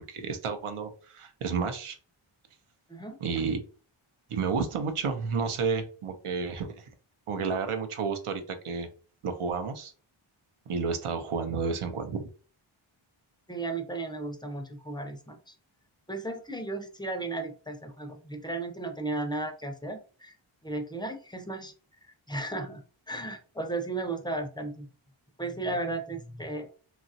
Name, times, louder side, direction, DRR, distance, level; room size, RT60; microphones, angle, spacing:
voice 1, 0.1-2.0 3.2-3.6 4.3-6.8 7.3-8.9 9.2-9.9 10.7-12.3, right 5 dB, 80° right, 7 dB, 0.7 m, -31 dB
voice 2, 13.5-15.5 16.1-20.4 20.6-21.7 22.0-24.9 25.4-26.7, right 2 dB, 10° left, 6 dB, 0.4 m, -35 dB
3.0 x 2.4 x 2.6 m, 0.38 s
wide cardioid pair, 75°, 50 cm